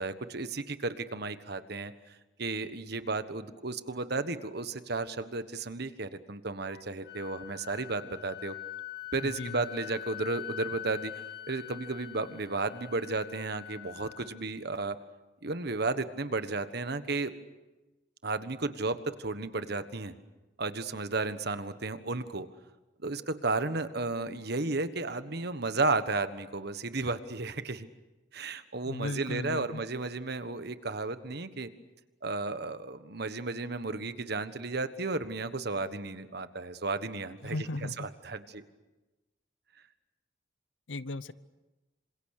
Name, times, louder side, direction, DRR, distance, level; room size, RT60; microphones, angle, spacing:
voice 1, 0.0-1.9 2.4-8.5 9.1-11.1 11.5-15.0 15.4-17.3 18.2-20.1 20.6-22.5 23.0-27.9 28.3-31.7 32.2-37.6 38.0-38.6, right 3 dB, 60° right, 11 dB, 1.4 m, -33 dB
Wind instrument woodwind instrument, 6.7-14.4, left 13 dB, 60° left, 1.7 m, -43 dB
voice 2, 9.2-9.6 28.8-29.8 37.4-38.1 40.9-41.3, left 2 dB, 80° left, 16 dB, 0.9 m, -36 dB
27.5 x 26.5 x 6.6 m, 1.1 s
head